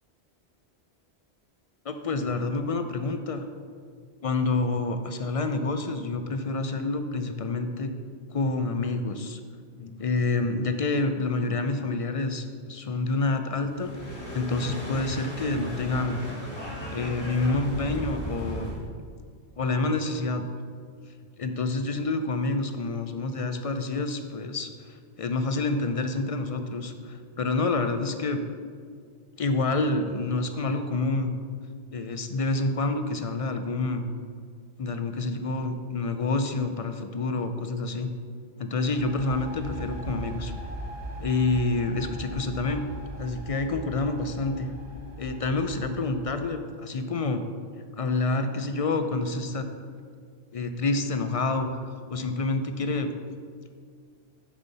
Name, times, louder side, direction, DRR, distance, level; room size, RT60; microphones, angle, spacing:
voice 1, 1.8-3.5 4.2-7.9 8.3-9.4 9.8-16.2 16.9-18.7 19.6-20.4 21.4-28.4 29.4-31.3 31.9-34.1 34.8-38.1 38.6-40.5 41.2-42.9 43.2-44.7 45.2-47.4 48.0-49.7 50.5-53.1, left 3 dB, 45° left, 7 dB, 0.4 m, -28 dB
sound 1, 13.7-18.8, equal, 25° left, 1.7 m, -36 dB
sound 2, 38.8-46.6, right 1 dB, 35° right, 1.0 m, -39 dB
10.5 x 5.4 x 4.1 m, 2.1 s
omnidirectional pair, 1.1 m